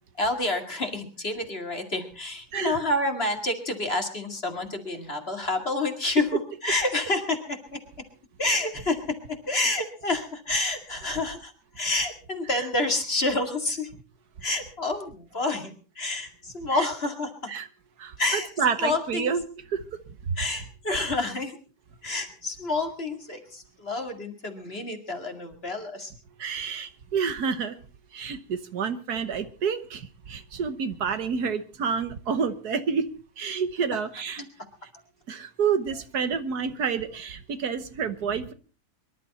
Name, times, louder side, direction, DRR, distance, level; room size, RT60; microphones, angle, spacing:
voice 1, 0.2-8.1 8.4-13.9 14.4-17.6 18.2-18.5 18.8-19.3 20.4-21.6 22.0-26.1 33.9-34.0, left 2 dB, 35° left, 5 dB, 2.5 m, -29 dB
voice 2, 18.0-19.4 19.7-19.8 20.3-20.4 26.4-27.7 28.1-33.1 33.4-34.5 35.3-38.5, right 6 dB, 70° right, 11 dB, 1.7 m, -29 dB
24.5 x 12.0 x 4.2 m, 0.37 s
omnidirectional pair, 1.8 m